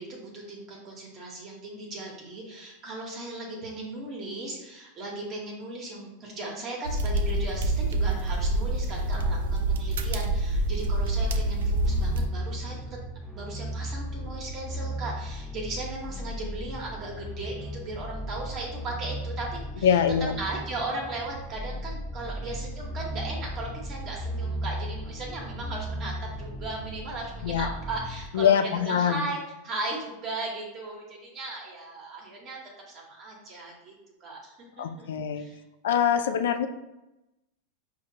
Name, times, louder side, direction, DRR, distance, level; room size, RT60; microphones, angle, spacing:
voice 1, 0.0-13.0 13.3-20.0 20.4-29.4 29.6-32.6 32.9-33.9 34.2-35.1 35.4-35.6, right 2 dB, 40° right, -2 dB, 1.0 m, -37 dB
sound 1, 6.8-12.3, right 1 dB, 75° right, 0.3 m, -26 dB
sound 2, 11.8-28.3, right 1 dB, 5° left, 0.4 m, -36 dB
voice 2, 19.8-20.3 27.4-27.7 28.3-29.3 34.8-35.5 35.8-36.7, left 8 dB, 75° left, 9 dB, 0.3 m, -24 dB
4.8 x 2.3 x 2.7 m, 0.95 s
hypercardioid pair, 105°, 0 cm